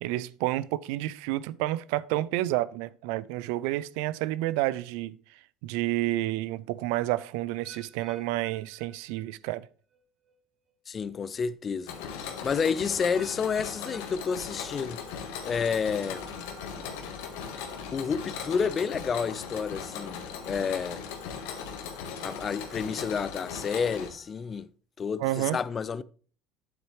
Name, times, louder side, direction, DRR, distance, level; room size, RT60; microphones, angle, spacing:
voice 1, 0.0-5.2 5.6-9.7 25.2-25.6, right 16 dB, 80° right, 0.3 m, -30 dB
sound 1, 7.6-9.6 9.9-10.3 11.0-11.1 13.1-15.1 15.4-15.8 16.5-16.6, right 3 dB, 35° right, 1.7 m, -54 dB
voice 2, 10.9-11.9 12.4-15.0 15.4-16.3 17.9-21.0 22.2-24.7 25.0-26.0, left 6 dB, 35° left, 0.4 m, -30 dB
Mechanisms, 11.9-24.1, left 7 dB, 90° left, 1.4 m, -38 dB
sound 2, 16.0-24.6, right 2 dB, 20° right, 1.8 m, -54 dB
9.2 x 7.5 x 3.2 m
supercardioid pair, 105°, 0 cm